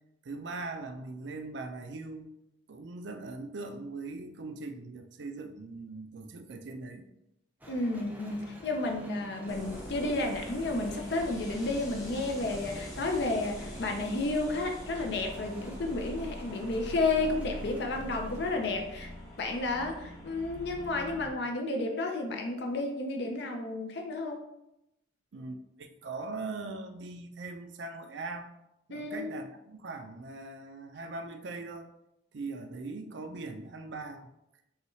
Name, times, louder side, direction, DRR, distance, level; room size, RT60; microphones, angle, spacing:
voice 1, 0.2-2.3 2.7-7.1 25.3-28.5 28.9-31.9 32.3-34.3, right 3 dB, 65° right, 7 dB, 0.4 m, -40 dB
sound 1, 7.6-18.5, equal, 10° right, 0.5 m, -48 dB
voice 2, 7.7-19.1 19.4-24.4 28.9-29.3, left 2 dB, 60° left, 3 dB, 0.5 m, -32 dB
sound 2, 9.5-21.3, equal, 20° left, 1.1 m, -44 dB
5.5 x 2.3 x 3.1 m, 0.86 s
head